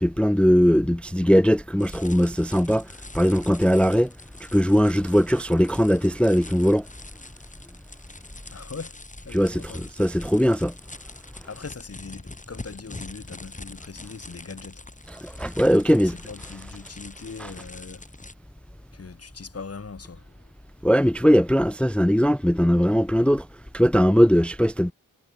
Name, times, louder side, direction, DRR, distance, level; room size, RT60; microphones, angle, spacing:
voice 1, 0.0-2.9 3.1-4.1 4.5-6.9 9.3-10.7 15.2-16.1 20.8-23.5 23.7-24.9, equal, 5° left, 0.4 m, -20 dB
sound 1, 1.8-18.3, left 2 dB, 20° left, 7.3 m, -44 dB
voice 2, 8.4-10.1 11.4-18.1 18.9-20.5, left 4 dB, 45° left, 5.9 m, -41 dB
wide cardioid pair, 135°, 34 cm